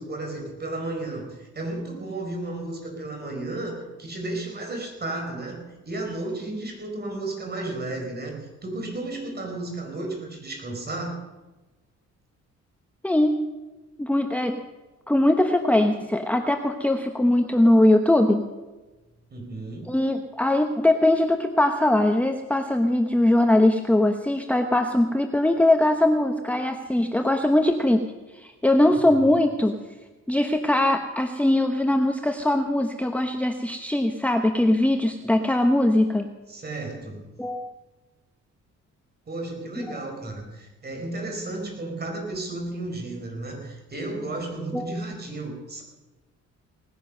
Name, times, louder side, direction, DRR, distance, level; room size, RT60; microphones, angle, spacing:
voice 1, 0.0-11.2 19.3-19.9 28.8-29.2 36.5-37.3 39.3-45.8, right 2 dB, 35° right, 2 dB, 4.5 m, -33 dB
voice 2, 13.0-13.4 14.0-14.6 15.1-18.4 19.9-28.0 28.3-29.7 30.3-36.3 37.4-37.7 44.7-44.9, left 1 dB, 5° left, 5 dB, 1.0 m, -21 dB
19.0 x 10.0 x 6.6 m, 1.1 s
cardioid pair, 90°, 30 cm